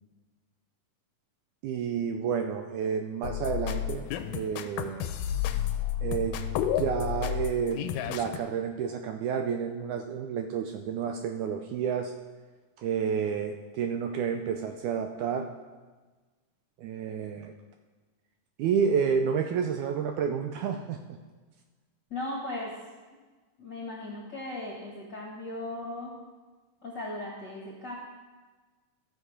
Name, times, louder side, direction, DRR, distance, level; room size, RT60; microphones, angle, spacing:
voice 1, 1.6-5.1 6.0-6.4 6.7-7.8 8.1-12.1 12.8-15.5 16.8-17.5 18.6-21.2, right 7 dB, 80° right, 5 dB, 1.8 m, -30 dB
sound 1, 3.2-8.4, left 10 dB, 80° left, 2.2 m, -31 dB
voice 2, 22.1-22.7 23.6-26.1 26.8-27.9, left 2 dB, 50° left, -3 dB, 1.3 m, -37 dB
14.0 x 6.4 x 5.0 m, 1.3 s
omnidirectional pair, 3.9 m